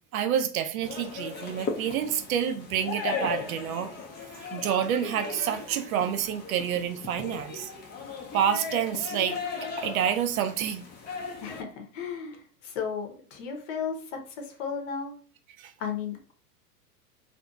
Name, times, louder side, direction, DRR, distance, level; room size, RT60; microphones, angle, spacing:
voice 1, 0.1-3.9 4.3-7.7 8.3-9.4 9.8-10.8 15.6-15.7, right 9 dB, 60° right, 0.5 m, -28 dB
sound 1, 0.8-11.6, left 4 dB, 20° left, 0.5 m, -37 dB
voice 2, 11.4-15.2 15.8-16.3, left 6 dB, 50° left, 0.8 m, -35 dB
2.7 x 2.4 x 2.3 m
figure-of-eight pair, 85°, 49 cm